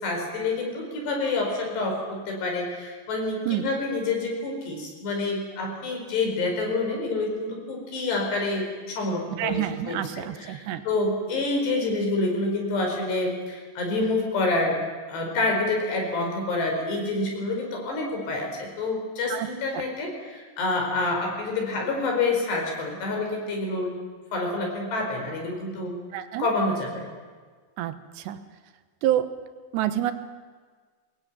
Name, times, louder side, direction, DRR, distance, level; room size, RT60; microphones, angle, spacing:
voice 1, 0.0-14.8 15.1-24.0 24.3-26.0 26.4-27.1, left 2 dB, 80° left, 1 dB, 7.0 m, -27 dB
voice 2, 9.4-10.8 19.3-19.5 19.7-19.9 26.1-26.5 27.8-28.4 29.0-29.3 29.7-30.1, right 12 dB, 90° right, 10 dB, 3.4 m, -27 dB
22.5 x 20.0 x 9.4 m, 1.5 s
omnidirectional pair, 4.8 m